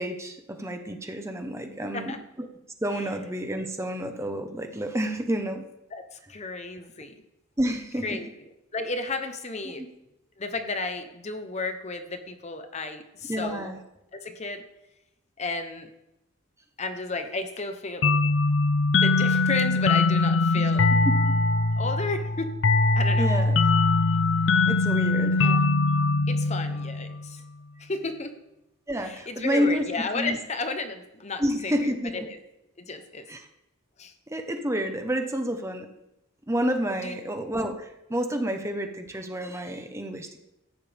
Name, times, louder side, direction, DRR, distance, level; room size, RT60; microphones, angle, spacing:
voice 1, 0.0-2.5 2.8-5.6 7.6-8.2 9.8-9.9 13.3-13.8 20.5-20.7 21.0-21.4 23.2-23.5 24.7-25.4 28.9-30.4 31.4-32.2 33.3-33.5 34.3-35.9 36.5-40.4, equal, 15° right, 5 dB, 1.0 m, -29 dB
voice 2, 1.8-2.2 5.9-7.1 8.0-8.3 8.7-9.8 10.4-13.7 14.1-14.6 15.4-15.9 16.8-18.1 18.9-20.9 21.8-22.5 22.9-23.3 25.4-25.6 26.3-27.4 27.8-28.3 29.0-32.4 32.8-33.3 34.0-34.1 37.0-37.2, left 3 dB, 30° left, 8 dB, 0.9 m, -33 dB
sound 1, 18.0-27.4, left 3 dB, 60° left, 0.6 m, -22 dB
17.5 x 14.0 x 3.5 m, 0.92 s
head